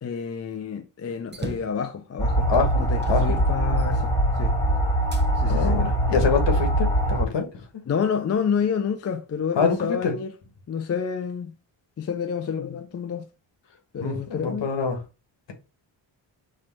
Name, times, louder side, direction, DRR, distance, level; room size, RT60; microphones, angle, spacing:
voice 1, 0.0-2.5 2.8-4.6 5.4-5.8 7.9-10.3 10.7-11.6 12.0-13.3 13.9-14.7, left 7 dB, 35° left, 0.5 m, -29 dB
sound 1, 1.3-1.8 2.5-2.6 3.0-4.4 5.1-5.3 6.0-7.0, right 3 dB, 20° right, 0.8 m, -36 dB
sound 2, 2.2-7.2, right 1 dB, 5° left, 1.2 m, -22 dB
voice 2, 2.5-3.2 5.5-7.6 9.5-9.8 10.0-10.1 14.0-15.0, left 5 dB, 60° left, 1.4 m, -25 dB
4.4 x 2.5 x 4.3 m
cardioid pair, 65°, 48 cm